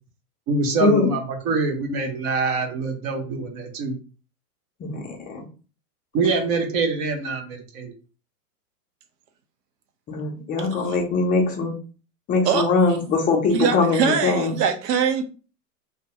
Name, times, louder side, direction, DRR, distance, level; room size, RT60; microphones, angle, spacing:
voice 1, 0.5-4.0 6.1-7.9, right 4 dB, 35° right, 4 dB, 0.7 m, -25 dB
voice 2, 4.8-5.4 10.1-11.7 12.3-14.5, left 3 dB, 20° left, 1 dB, 0.5 m, -21 dB
voice 3, 13.5-15.2, right 7 dB, 80° right, 5 dB, 0.7 m, -22 dB
2.2 x 2.2 x 2.8 m, 0.35 s
hypercardioid pair, 120°, 47 cm